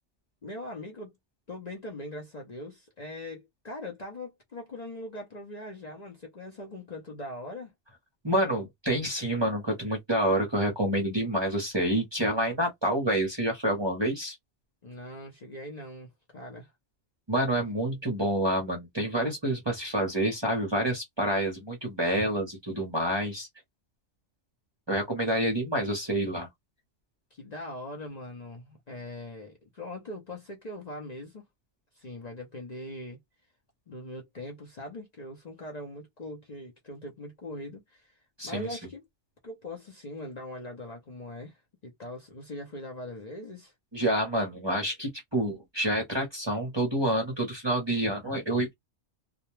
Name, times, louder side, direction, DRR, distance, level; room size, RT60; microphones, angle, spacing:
voice 1, 0.4-1.1 1.5-7.7 14.8-16.7 27.3-31.4 31.9-33.2 33.9-38.2 38.4-39.0 39.4-43.7, left 1 dB, 45° left, 0.7 m, -41 dB
voice 2, 8.2-14.4 17.3-23.5 24.9-26.5 38.4-38.8 43.9-48.7, right 1 dB, 25° right, 0.7 m, -28 dB
2.4 x 2.1 x 3.0 m
omnidirectional pair, 1.2 m